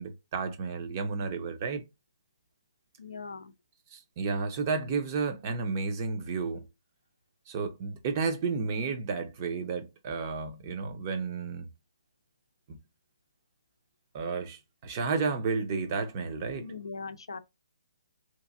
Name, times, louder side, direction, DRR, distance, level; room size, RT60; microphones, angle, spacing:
voice 1, 0.0-1.8 3.9-6.6 7.5-11.7 12.7-12.8 14.1-16.7, right 4 dB, 35° right, 0.6 m, -32 dB
voice 2, 3.0-3.5 16.6-17.4, left 4 dB, 75° left, 0.5 m, -40 dB
2.9 x 2.5 x 2.4 m
figure-of-eight pair, 140°, 3 cm